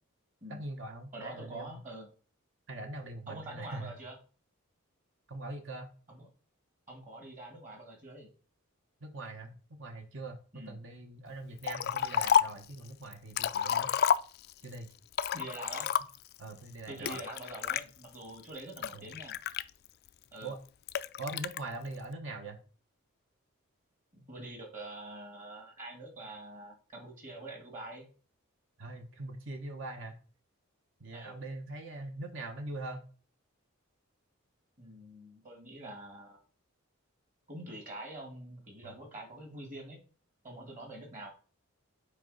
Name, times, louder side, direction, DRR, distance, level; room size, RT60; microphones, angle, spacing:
voice 1, 0.5-1.8 2.7-3.9 5.3-5.9 9.0-13.9 14.6-14.9 16.4-17.2 18.9-19.0 20.4-20.6 21.2-22.6 28.8-30.2 31.0-33.0 38.8-38.9, right 2 dB, 60° right, 5 dB, 1.1 m, -42 dB
voice 2, 1.1-2.1 3.3-4.2 6.1-6.3 6.9-8.3 10.5-10.8 15.3-15.9 16.9-19.4 20.3-20.5 24.1-28.1 31.1-31.4 34.8-36.4 37.5-40.0 40.4-41.3, right 1 dB, 35° right, 2 dB, 1.8 m, -45 dB
Liquid, 11.6-12.6 13.1-14.6 15.1-16.3 17.0-17.8 18.4-20.1 20.9-21.6, left 8 dB, 45° left, 0.3 m, -30 dB
8.3 x 4.8 x 4.0 m, 0.39 s
head